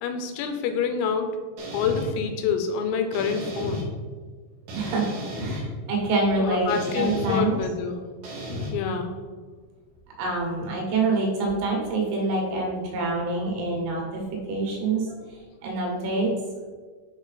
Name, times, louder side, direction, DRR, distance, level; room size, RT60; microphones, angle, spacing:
voice 1, 0.0-1.4 1.7-3.9 6.4-8.0 8.7-9.2, left 6 dB, 90° left, 6 dB, 3.5 m, -27 dB
sound 1, 1.6-2.1 3.1-3.8 4.7-5.6 6.7-7.4 8.2-8.7, left 1 dB, 60° right, 2.4 m, -33 dB
voice 2, 4.7-7.6 10.2-16.4, right 3 dB, 85° right, -1 dB, 4.3 m, -26 dB
9.5 x 4.0 x 4.1 m, 1.5 s
omnidirectional pair, 5.9 m